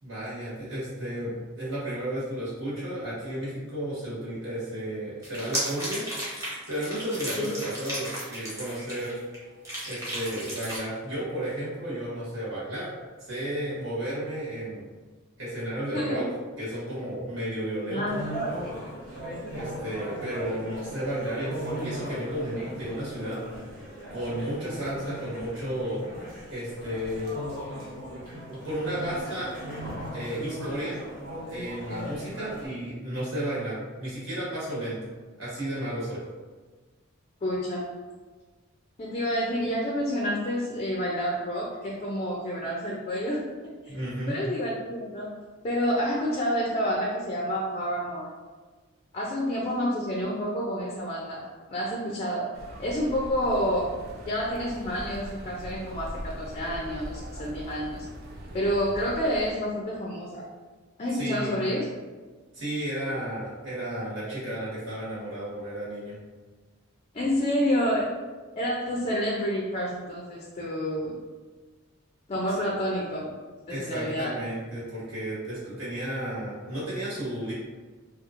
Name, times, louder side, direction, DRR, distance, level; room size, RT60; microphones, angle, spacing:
voice 1, 0.0-6.0 6.7-9.2 9.8-12.9 13.2-14.9 15.4-16.3 16.6-18.2 19.5-23.4 24.1-26.0 26.5-27.6 28.5-29.5 30.1-31.0 31.5-35.1 35.4-36.2 43.9-44.4 61.1-61.6 62.5-66.2 73.7-77.5, right 1 dB, 65° right, -9 dB, 1.3 m, -33 dB
sound 1, 5.2-9.3 9.6-10.8, equal, 15° right, 0.8 m, -34 dB
voice 2, 17.9-18.5 37.4-37.9 39.0-43.5 43.8-43.9 44.3-45.3 45.6-48.3 49.1-51.4 51.7-52.5 52.8-54.0 54.2-58.1 58.5-60.5 61.0-61.9 67.1-68.1 68.6-71.1 72.3-73.3 73.7-74.4, equal, 30° left, -3 dB, 0.3 m, -29 dB
sound 2, 18.1-32.7, equal, 85° right, 0.9 m, -38 dB
sound 3, 52.5-59.5, equal, 45° right, 0.4 m, -41 dB
2.9 x 2.3 x 2.4 m, 1.4 s
head